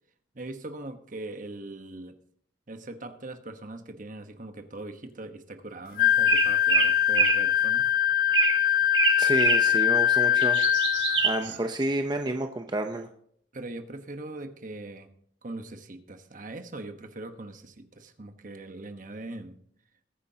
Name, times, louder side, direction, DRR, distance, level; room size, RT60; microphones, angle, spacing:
voice 1, 0.3-2.2 2.7-7.9 11.4-11.7 13.5-15.1 15.4-19.6, right 2 dB, 50° right, 7 dB, 1.2 m, -41 dB
Wind instrument woodwind instrument, 6.0-11.4, left 11 dB, 50° left, 0.5 m, -23 dB
sound 1, 6.3-7.5 8.3-8.6 8.9-9.7 10.2-11.6, right 8 dB, 80° right, 1.3 m, -26 dB
voice 2, 9.2-10.6 11.2-13.1, right 1 dB, 25° right, 5 dB, 0.7 m, -29 dB
21.5 x 9.7 x 2.9 m, 0.63 s
head